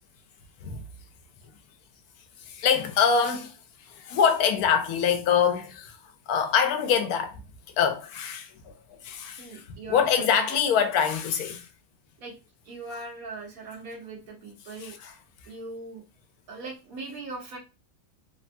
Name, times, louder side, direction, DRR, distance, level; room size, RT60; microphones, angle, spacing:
voice 1, 2.5-3.6 3.9-6.0 6.3-7.4 7.8-8.7 9.0-9.6 9.9-11.7 14.8-15.1, left 7 dB, 90° left, 1.1 m, -24 dB
voice 2, 9.4-10.4 12.2-12.3 12.6-15.0 15.5-16.0 16.5-17.6, right 3 dB, 75° right, 1.4 m, -40 dB
3.3 x 2.2 x 2.5 m
omnidirectional pair, 1.5 m